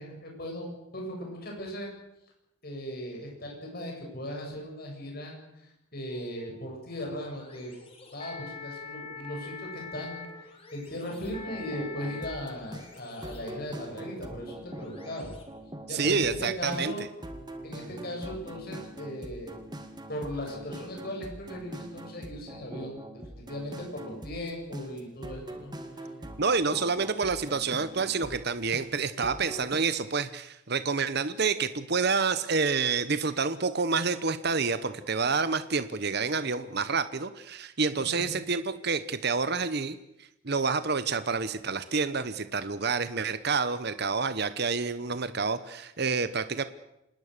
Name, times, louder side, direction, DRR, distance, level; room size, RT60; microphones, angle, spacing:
voice 1, 0.0-1.9 2.6-7.7 8.1-15.3 15.9-17.1 17.6-19.6 20.1-23.0 23.3-26.0 38.0-38.3, equal, 45° left, 0 dB, 7.8 m, -38 dB
sound 1, 6.1-15.4, left 5 dB, 25° left, 4.4 m, -45 dB
sound 2, 11.1-29.8, right 1 dB, 20° right, 2.1 m, -43 dB
voice 2, 15.9-16.9 26.4-46.6, right 4 dB, 50° right, 12 dB, 1.0 m, -28 dB
27.0 x 20.0 x 6.7 m, 0.85 s
head